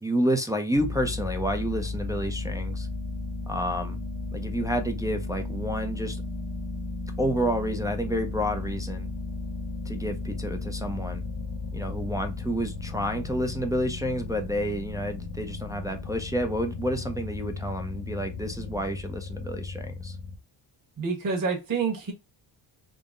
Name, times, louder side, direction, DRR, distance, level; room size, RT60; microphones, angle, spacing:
voice 1, 0.0-2.9 3.5-4.0 4.3-6.2 7.2-9.1 9.9-11.2 11.7-20.2, equal, 10° right, 0.4 m, -29 dB
sound 1, 0.8-20.4, left 3 dB, 45° left, 0.9 m, -35 dB
voice 2, 21.0-22.1, right 5 dB, 40° right, 1.3 m, -27 dB
3.8 x 2.1 x 3.6 m
wide cardioid pair, 120°, 48 cm